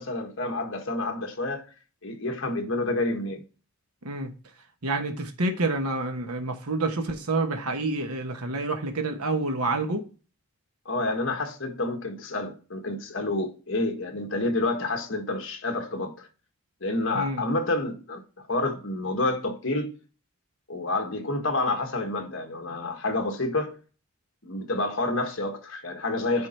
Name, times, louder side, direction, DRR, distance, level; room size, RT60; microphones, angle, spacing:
voice 1, 0.0-1.7 2.0-3.4 10.8-16.3 16.8-19.9 20.7-23.8 24.4-26.5, left 2 dB, 55° left, 1.5 m, -29 dB
voice 2, 4.8-10.0 17.1-17.5, right 2 dB, 85° right, 1.2 m, -28 dB
9.6 x 3.8 x 4.4 m
head